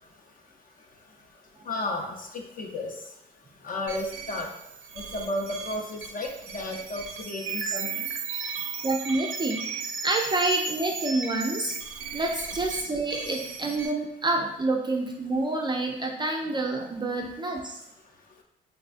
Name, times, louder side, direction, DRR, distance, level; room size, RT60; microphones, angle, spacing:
voice 1, 1.7-2.9 3.6-4.5 5.0-8.1, left 2 dB, 45° left, 3 dB, 0.5 m, -33 dB
sound 1, 3.9-13.9, right 6 dB, 90° right, 0.5 m, -36 dB
voice 2, 8.8-9.7 10.0-11.8 12.1-17.8, right 2 dB, 25° right, 1 dB, 0.3 m, -28 dB
3.4 x 2.1 x 2.5 m, 0.80 s
cardioid pair, 90°, 20 cm